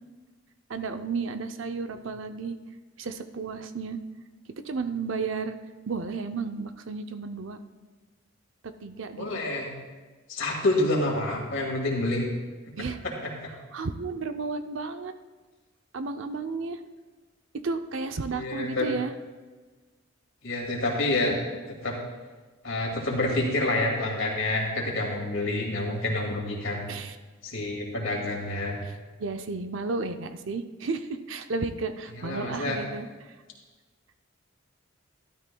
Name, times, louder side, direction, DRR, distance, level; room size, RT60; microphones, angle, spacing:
voice 1, 0.7-2.5 3.0-4.0 4.6-5.6 5.9-7.6 8.6-9.3 12.8-13.0 13.7-15.1 15.9-16.8 17.6-19.1 26.9-27.2 29.2-33.1, right 4 dB, 65° right, 8 dB, 0.6 m, -32 dB
voice 2, 9.1-9.7 10.3-12.3 13.2-13.3 18.3-18.9 20.4-21.4 21.8-21.9 22.6-26.9 27.4-28.8 32.1-32.8, left 2 dB, 65° left, -1 dB, 2.3 m, -28 dB
13.0 x 12.0 x 2.3 m, 1.4 s
head